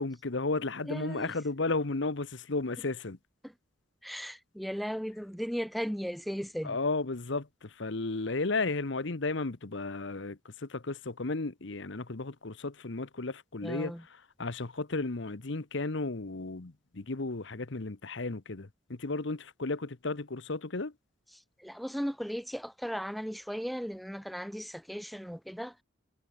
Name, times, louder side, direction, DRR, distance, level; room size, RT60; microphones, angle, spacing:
voice 1, 0.0-3.2 6.6-20.9, left 3 dB, 60° left, 1.0 m, -34 dB
voice 2, 0.9-1.3 3.4-3.5 4.0-6.8 13.6-14.0 21.3-25.7, equal, ahead, 0.3 m, -36 dB
head